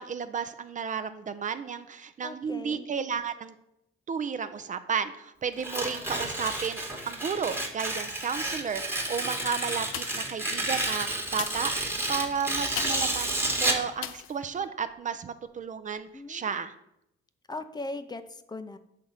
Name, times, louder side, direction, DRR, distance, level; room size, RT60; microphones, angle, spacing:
voice 1, 0.0-3.5 4.1-16.7, right 6 dB, 40° right, 11 dB, 0.5 m, -33 dB
voice 2, 2.2-2.9 16.1-16.7 17.5-18.8, left 2 dB, 20° left, 10 dB, 0.5 m, -39 dB
Tearing, 5.6-13.9, right 1 dB, 10° right, 1.3 m, -31 dB
sound 1, 9.9-10.4 11.2-13.2 14.0-14.4 14.9-15.0, left 12 dB, 85° left, 0.4 m, -38 dB
6.4 x 3.6 x 5.6 m, 0.79 s
cardioid pair, 90°, 20 cm